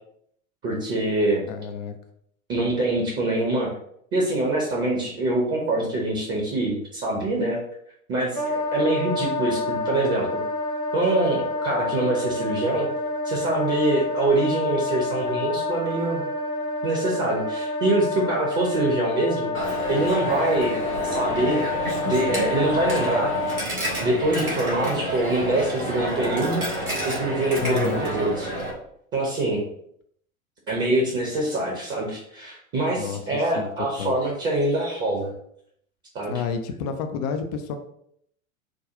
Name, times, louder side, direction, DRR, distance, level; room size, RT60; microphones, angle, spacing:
voice 1, 0.6-1.4 2.5-3.7 4.1-7.6 8.1-10.3 10.9-12.9 13.2-16.2 16.8-20.8 21.0-21.6 22.1-23.3 24.0-28.5 29.1-29.6 30.7-35.3 36.1-36.3, right 2 dB, 30° right, -2 dB, 1.0 m, -24 dB
voice 2, 1.5-1.9 27.6-28.1 32.9-33.7 34.0-34.2 36.3-37.7, left 6 dB, 30° left, 6 dB, 0.4 m, -29 dB
Wind instrument woodwind instrument, 8.3-23.6, left 2 dB, 80° left, 1.1 m, -28 dB
Coin (dropping), 19.5-28.7, right 1 dB, 85° right, 1.5 m, -29 dB
4.9 x 2.3 x 3.7 m, 0.70 s
figure-of-eight pair, 85°, 42 cm